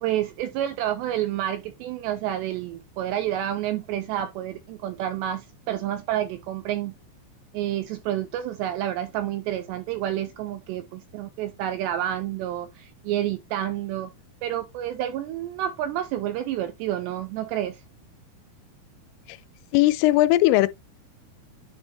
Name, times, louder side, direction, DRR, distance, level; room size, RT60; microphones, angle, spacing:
voice 1, 0.0-6.9 7.5-14.1 14.4-17.8, right 12 dB, 85° right, 2.5 m, -29 dB
voice 2, 19.7-20.7, left 16 dB, 85° left, 3.1 m, -18 dB
10.0 x 3.7 x 3.3 m
omnidirectional pair, 5.6 m